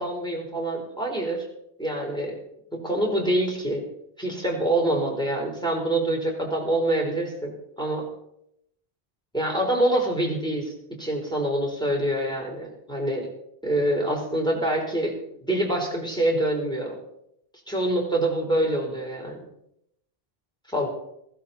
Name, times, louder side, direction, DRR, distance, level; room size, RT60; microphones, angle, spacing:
voice 1, 0.0-1.5 1.8-2.4 2.7-3.8 4.2-7.5 7.8-8.0 9.3-13.3 13.6-15.1 15.5-17.0 17.7-19.4 20.7-20.9, right 1 dB, 5° left, -1 dB, 4.3 m, -25 dB
15.5 x 15.0 x 4.3 m, 0.76 s
omnidirectional pair, 1.0 m